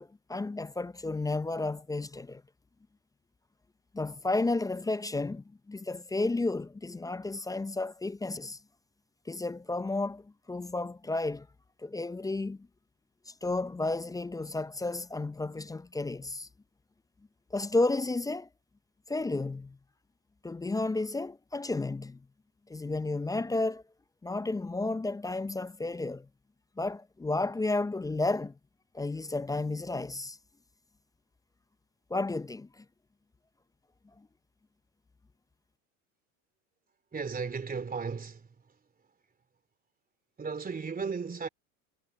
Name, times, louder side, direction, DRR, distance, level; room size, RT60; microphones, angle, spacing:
voice 1, 0.0-2.4 3.9-8.6 9.3-11.5 11.8-12.6 13.3-16.5 17.5-18.5 19.1-19.8 20.4-22.2 22.7-23.8 24.2-26.3 26.8-28.5 28.9-30.4 32.1-32.8, left 2 dB, 10° left, 0.5 m, -32 dB
voice 2, 37.1-38.8 40.4-41.5, right 5 dB, 20° right, 3.0 m, -35 dB
hypercardioid pair, 95°, 40 cm